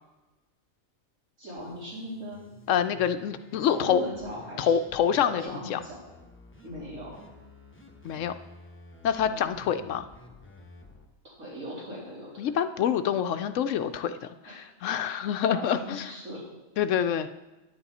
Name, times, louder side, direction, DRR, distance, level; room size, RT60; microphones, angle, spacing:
voice 1, 1.4-2.4 3.6-4.7 5.1-6.0 6.6-7.1 9.2-9.5 11.2-12.5 14.4-14.6 15.5-16.4, equal, 75° right, -7 dB, 4.1 m, -39 dB
sound 1, 1.6-11.1, left 2 dB, 10° left, 0.9 m, -52 dB
voice 2, 2.7-4.0 4.6-5.8 8.0-8.3 9.0-10.1 12.4-14.1 14.4-16.1 16.8-17.3, left 8 dB, 70° left, 10 dB, 0.9 m, -26 dB
10.0 x 9.7 x 4.2 m, 1.1 s
omnidirectional pair, 1.4 m